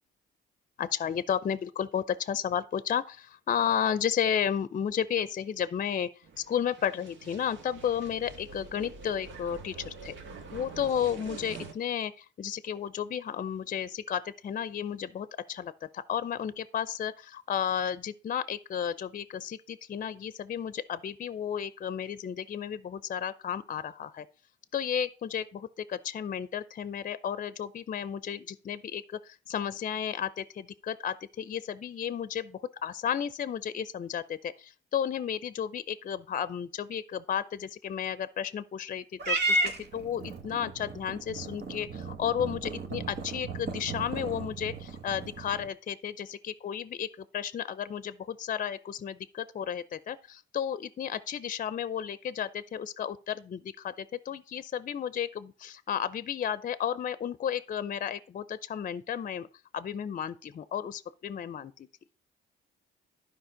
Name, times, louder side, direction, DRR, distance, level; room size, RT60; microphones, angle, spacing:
voice 1, 0.8-6.1 6.4-10.1 10.5-24.3 24.7-47.1 47.3-59.5 59.7-61.9, left 8 dB, 45° left, 0.6 m, -33 dB
sound 1, 6.2-11.7, right 4 dB, 75° right, 1.5 m, -45 dB
Purr / Meow, 39.2-45.7, right 2 dB, 60° right, 1.5 m, -34 dB
11.5 x 5.0 x 5.0 m
cardioid pair, 90°, 20 cm